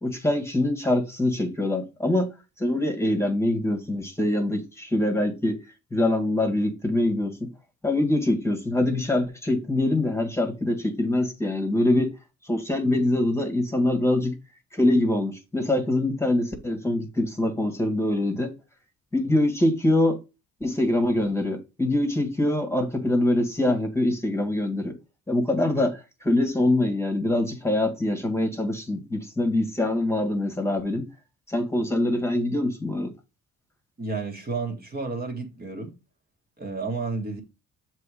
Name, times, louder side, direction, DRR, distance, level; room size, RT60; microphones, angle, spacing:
voice 1, 0.0-2.3 2.6-5.6 5.9-7.5 7.8-12.1 12.4-14.3 14.7-18.5 19.1-20.2 20.6-25.0 25.3-31.1 31.5-33.1, left 1 dB, 10° left, 1.6 m, -24 dB
voice 2, 34.0-35.9 36.6-37.4, right 4 dB, 30° right, 1.8 m, -31 dB
6.8 x 3.2 x 4.9 m
cardioid pair, 90°, 30 cm